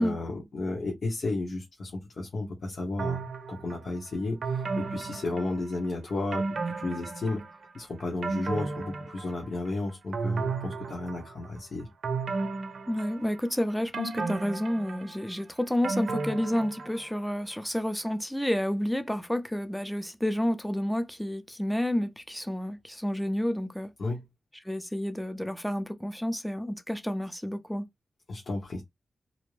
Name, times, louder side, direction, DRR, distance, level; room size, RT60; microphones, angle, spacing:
voice 1, 0.0-3.2 3.5-7.4 7.7-11.9 24.0-24.2 28.3-28.8, left 2 dB, 65° left, 0.9 m, -33 dB
sound 1, 3.0-3.8 4.4-5.9 6.3-7.6 8.0-9.7 10.1-11.5 12.0-13.5 13.9-17.2 17.5-17.6, right 4 dB, 75° right, 0.6 m, -33 dB
voice 2, 12.9-23.9 24.6-27.9, equal, 5° left, 0.5 m, -30 dB
2.5 x 2.1 x 3.1 m
cardioid pair, 65°, 0 cm